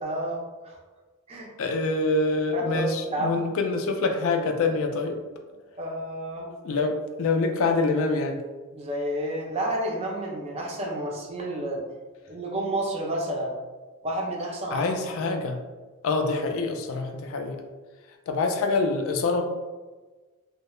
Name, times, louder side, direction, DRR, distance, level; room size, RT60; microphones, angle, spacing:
voice 1, 0.0-0.8 1.3-1.5 2.5-2.8 3.1-3.4 5.7-6.8 8.7-11.8 12.3-13.5 14.0-14.9, right 1 dB, 30° right, -1 dB, 0.4 m, -30 dB
voice 2, 1.6-5.2 6.6-8.4 14.7-15.6 16.0-17.6 18.3-19.4, left 3 dB, 65° left, 4 dB, 0.3 m, -25 dB
2.2 x 2.1 x 2.9 m, 1.3 s
head